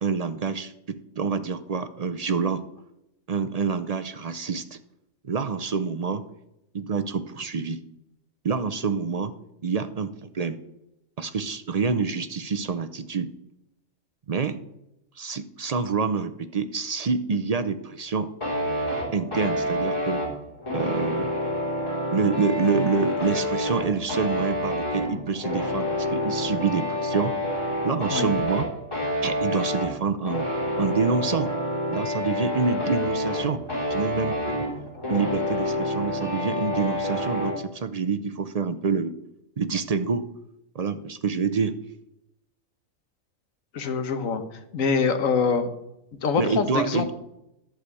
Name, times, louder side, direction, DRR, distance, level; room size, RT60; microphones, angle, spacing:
voice 1, 0.0-2.6 3.3-4.8 5.2-6.3 6.7-7.8 8.4-9.3 9.6-10.6 11.2-13.3 14.3-14.6 15.2-18.3 19.1-20.2 20.7-21.3 22.1-27.3 27.8-28.7 29.2-30.5 30.8-31.5 31.9-33.6 33.9-34.7 35.1-39.1 39.6-40.3 40.7-41.8 46.4-47.1, right 5 dB, 50° right, 10 dB, 0.4 m, -27 dB
sound 1, 18.4-37.6, left 1 dB, 20° left, 3.5 m, -28 dB
voice 2, 43.7-44.4 44.7-45.7 46.2-47.0, left 5 dB, 80° left, 9 dB, 1.5 m, -24 dB
11.5 x 4.9 x 8.1 m, 0.86 s
omnidirectional pair, 1.4 m